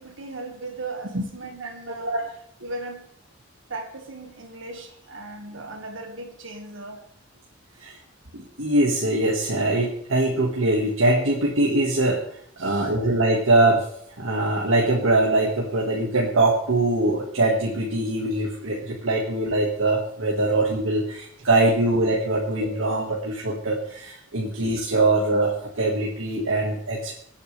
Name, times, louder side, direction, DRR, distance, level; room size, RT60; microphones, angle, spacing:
voice 1, 0.0-2.3 2.6-3.1 3.7-7.0 12.6-12.9, right 2 dB, 65° right, 4 dB, 1.9 m, -37 dB
voice 2, 8.3-12.2 12.6-13.8 14.2-27.1, right 2 dB, 80° right, -3 dB, 2.0 m, -22 dB
25.0 x 8.7 x 3.5 m, 0.67 s
head